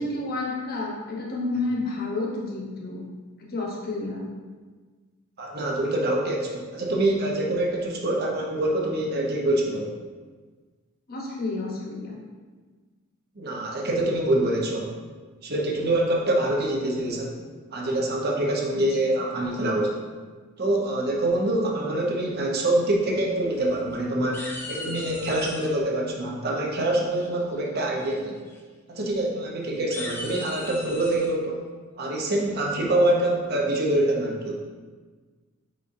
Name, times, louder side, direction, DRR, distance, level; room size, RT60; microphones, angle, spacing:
voice 1, 0.0-3.1 3.4-4.3 11.1-12.2 18.7-18.8, left 2 dB, 45° left, -3 dB, 0.9 m, -30 dB
voice 2, 5.4-9.9 13.4-14.9 15.4-17.4 17.7-19.9 20.6-28.4 28.9-31.6 32.0-34.6, right 1 dB, 50° right, -1 dB, 0.7 m, -25 dB
sound 1, 23.4-24.0 24.3-25.7 27.2-27.6 28.0-28.2 28.5-28.6 29.0-29.1 29.7-31.3, left 2 dB, 10° left, 0.4 m, -38 dB
5.1 x 4.0 x 2.5 m, 1.4 s
head